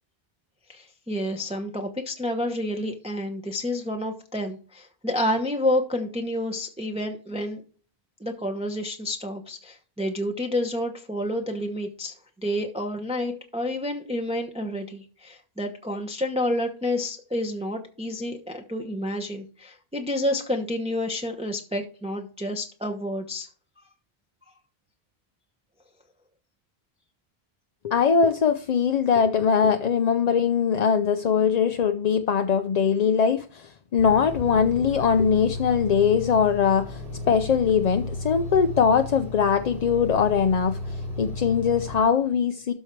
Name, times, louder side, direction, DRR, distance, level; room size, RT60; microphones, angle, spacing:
voice 1, 0.7-7.6 8.2-23.5, left 1 dB, 5° right, 0.9 m, -29 dB
voice 2, 27.8-42.7, left 6 dB, 50° left, 0.6 m, -22 dB
sound 1, 34.0-42.0, left 2 dB, 50° right, 2.7 m, -34 dB
12.5 x 4.5 x 4.6 m
omnidirectional pair, 1.1 m